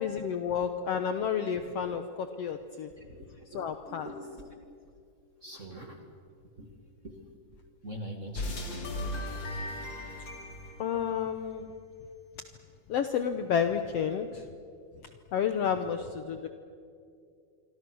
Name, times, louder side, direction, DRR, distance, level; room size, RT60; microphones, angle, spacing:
voice 1, 0.0-2.9 3.5-4.1 10.8-11.7 12.9-14.5 15.3-16.5, left 7 dB, 70° left, 8 dB, 1.6 m, -30 dB
voice 2, 2.9-4.9 5.4-6.2 6.5-6.8 7.0-9.3 9.7-9.8 15.7-15.8, right 1 dB, 30° right, 3 dB, 1.8 m, -45 dB
sound 1, 8.3-11.8, left 1 dB, 35° left, 3.1 m, -37 dB
27.0 x 24.0 x 6.2 m, 2.4 s
omnidirectional pair, 3.6 m